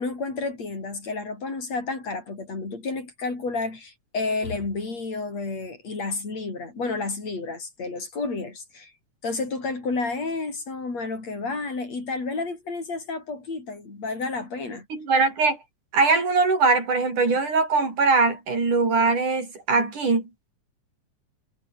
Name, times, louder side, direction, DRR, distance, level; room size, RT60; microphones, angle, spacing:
voice 1, 0.0-8.9 9.2-14.9, left 3 dB, 60° left, 7.6 m, -31 dB
voice 2, 14.9-15.6 15.9-20.3, right 4 dB, 90° right, 8.4 m, -21 dB
omnidirectional pair, 3.5 m